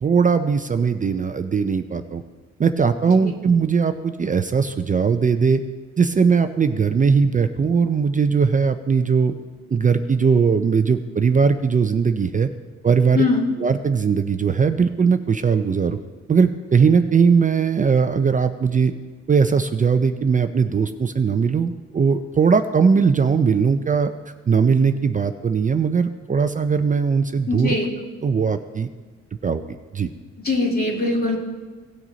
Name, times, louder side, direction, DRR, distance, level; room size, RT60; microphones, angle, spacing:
voice 1, 0.0-2.2 2.6-5.6 6.0-9.3 9.7-12.5 12.8-13.3 13.6-16.0 16.3-18.9 19.3-24.1 24.5-27.7 28.2-28.9 29.4-29.6 29.9-30.1, right 5 dB, 25° right, 9 dB, 0.5 m, -19 dB
voice 2, 27.5-27.9 30.4-31.4, left 3 dB, 30° left, -2 dB, 2.5 m, -21 dB
17.5 x 6.1 x 4.0 m, 1.4 s
cardioid pair, 90°, 30 cm